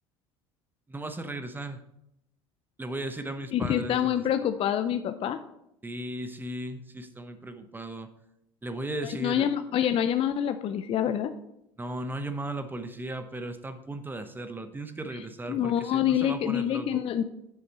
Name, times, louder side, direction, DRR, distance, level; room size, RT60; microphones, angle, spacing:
voice 1, 0.9-1.8 2.8-4.2 5.8-8.1 8.6-9.5 11.8-17.0, right 1 dB, 15° right, 8 dB, 0.9 m, -36 dB
voice 2, 3.5-5.4 9.0-11.3 15.1-15.2 15.5-17.2, left 10 dB, 40° left, 10 dB, 0.5 m, -26 dB
7.9 x 6.6 x 4.1 m, 0.81 s
hypercardioid pair, 70°, 14 cm